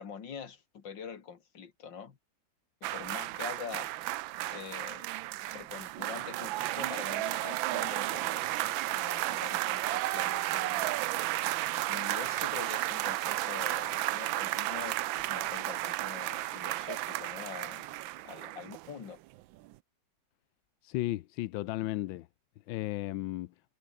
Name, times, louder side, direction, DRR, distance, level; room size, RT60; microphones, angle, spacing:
voice 1, 0.0-2.2 2.8-3.9 4.5-5.1 5.5-11.0 11.8-17.9 18.2-19.2, left 7 dB, 70° left, 2.7 m, -45 dB
sound 1, 2.8-19.1 19.4-19.5, right 16 dB, 90° right, 1.4 m, -33 dB
voice 2, 20.8-22.3 22.7-23.5, left 16 dB, 90° left, 1.4 m, -34 dB
omnidirectional pair, 2.1 m